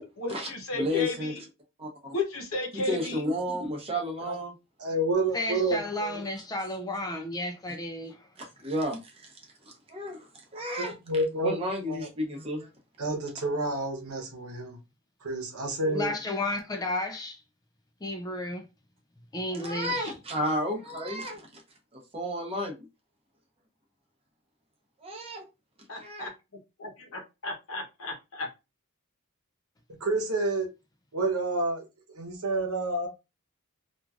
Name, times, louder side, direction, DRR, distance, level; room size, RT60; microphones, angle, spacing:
voice 1, 0.2-1.4 2.1-3.3 25.9-26.3 26.8-28.5, left 2 dB, 65° left, 0.8 m, -34 dB
voice 2, 0.8-1.3 1.8-2.1 2.9-4.5 6.1-6.4 8.4-9.3 9.9-10.9 11.4-12.7 19.5-21.4 22.1-22.9 25.0-25.4 26.0-26.3, equal, 25° right, 0.8 m, -32 dB
voice 3, 4.8-6.2 11.1-11.5 11.9-12.0 13.0-14.8 15.2-16.1 30.0-30.7 31.1-31.8 32.1-33.1, right 2 dB, 80° right, 0.9 m, -29 dB
voice 4, 5.3-8.1 15.9-17.4 18.0-18.6 19.3-20.1, left 1 dB, 15° left, 0.4 m, -32 dB
3.0 x 2.4 x 2.4 m
head